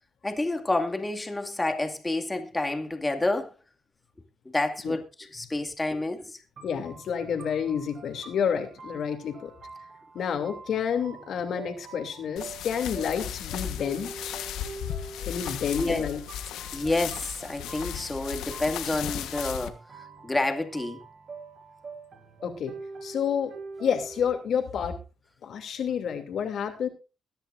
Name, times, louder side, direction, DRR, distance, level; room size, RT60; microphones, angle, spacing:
voice 1, 0.2-3.5 4.5-5.0 5.3-6.4 15.8-16.1 16.7-19.8 20.2-21.0, left 2 dB, 15° left, 2.2 m, -29 dB
voice 2, 6.6-9.5 10.1-14.4 15.3-16.2 22.4-22.7 23.0-23.5 23.8-25.0 25.4-26.9, left 7 dB, 65° left, 2.8 m, -29 dB
sound 1, 6.6-24.3, right 4 dB, 50° right, 6.0 m, -45 dB
sound 2, 12.4-19.7, left 10 dB, 85° left, 1.3 m, -36 dB
22.0 x 10.5 x 2.6 m
cardioid pair, 90°, 0 cm